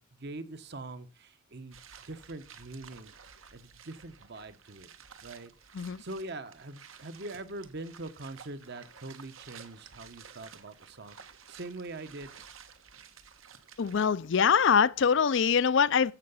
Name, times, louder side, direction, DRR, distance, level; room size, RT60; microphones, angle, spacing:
voice 1, 0.0-1.8 2.1-3.1 3.5-4.9 5.2-5.5 6.0-11.2 11.5-12.3, right 2 dB, 55° right, 1.1 m, -43 dB
sound 1, 1.7-14.0, right 7 dB, 80° right, 1.4 m, -53 dB
voice 2, 13.8-16.1, left 6 dB, 65° left, 0.5 m, -24 dB
15.0 x 5.8 x 5.6 m
head